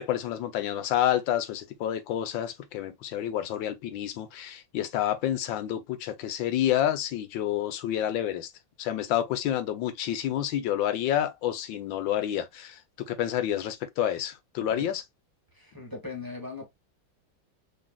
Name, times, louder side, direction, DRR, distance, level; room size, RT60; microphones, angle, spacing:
voice 1, 0.0-8.5 8.8-15.0, left 11 dB, 80° left, 1.5 m, -29 dB
voice 2, 15.5-16.7, left 3 dB, 10° right, 1.3 m, -39 dB
6.7 x 3.3 x 2.3 m
omnidirectional pair, 2.0 m